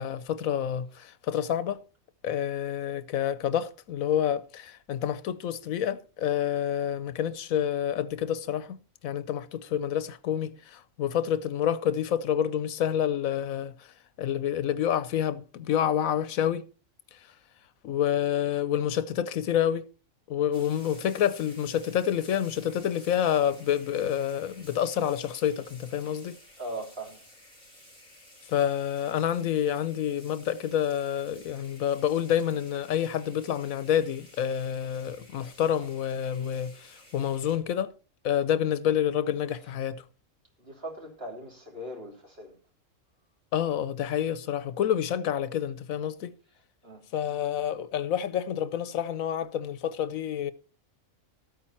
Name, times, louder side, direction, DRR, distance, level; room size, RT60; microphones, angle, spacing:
voice 1, 0.0-1.8 2.2-13.7 14.2-16.6 17.8-19.8 20.3-26.4 28.5-37.9 38.2-40.0 43.5-46.3 47.1-50.5, left 9 dB, 90° left, 1.2 m, -28 dB
sound 1, 20.5-37.6, left 1 dB, 75° right, 5.8 m, -53 dB
voice 2, 26.6-27.2 39.6-39.7 40.6-42.5 46.8-47.0, right 1 dB, 45° right, 3.5 m, -39 dB
13.5 x 8.7 x 4.4 m
omnidirectional pair, 1.4 m